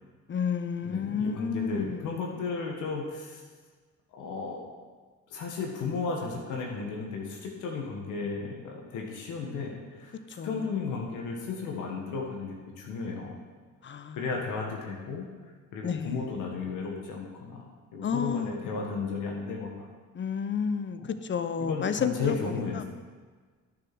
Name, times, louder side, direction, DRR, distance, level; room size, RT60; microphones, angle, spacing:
voice 1, 0.3-2.4 10.4-10.7 13.8-14.2 15.8-16.3 18.0-18.7 20.1-22.8, left 6 dB, 40° left, 10 dB, 0.8 m, -31 dB
voice 2, 0.8-3.4 4.1-4.7 5.3-10.2 10.4-13.4 14.1-17.7 17.9-19.9 21.7-22.8, left 4 dB, 85° left, 0 dB, 1.9 m, -34 dB
9.9 x 6.9 x 6.2 m, 1.5 s
cardioid pair, 90°, 30 cm